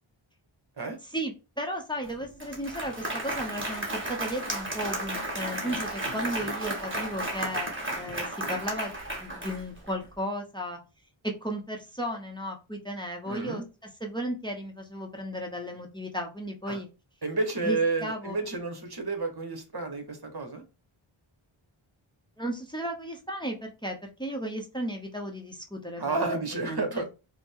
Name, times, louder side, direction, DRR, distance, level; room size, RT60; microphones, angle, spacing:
voice 1, 1.1-10.8 11.2-16.9 17.6-18.4 22.4-26.8, equal, 10° left, 3 dB, 0.8 m, -35 dB
Applause, 2.0-2.1 2.4-9.9, right 1 dB, 25° right, 1.6 m, -33 dB
voice 2, 13.3-13.6 16.7-16.8 17.2-20.6 26.0-27.1, right 3 dB, 50° right, 5 dB, 1.1 m, -30 dB
4.9 x 2.1 x 3.5 m, 0.30 s
wide cardioid pair, 55°, 50 cm